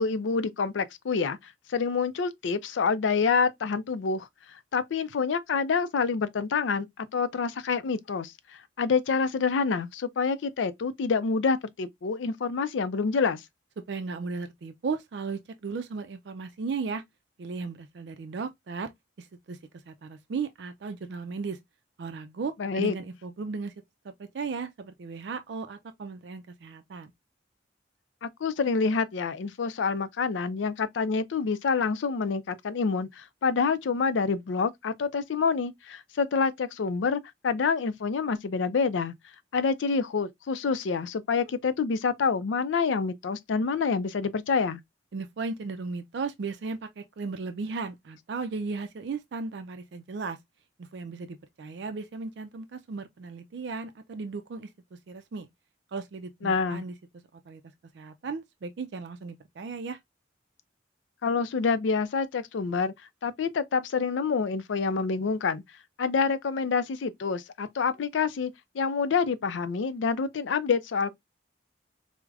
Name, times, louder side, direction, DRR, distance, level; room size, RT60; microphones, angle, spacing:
voice 1, 0.0-4.3 4.7-8.3 8.8-13.4 22.6-23.0 28.2-39.1 39.5-44.8 56.4-56.8 61.2-62.9 63.2-65.6 66.0-71.1, left 5 dB, 80° left, 0.4 m, -27 dB
voice 2, 13.9-17.0 17.4-18.9 19.2-19.6 19.9-21.6 22.0-23.7 24.0-27.1 45.1-50.4 50.8-55.5 55.9-56.9 57.5-57.6 57.9-60.0, right 4 dB, 65° right, 0.4 m, -36 dB
4.6 x 2.1 x 2.3 m
head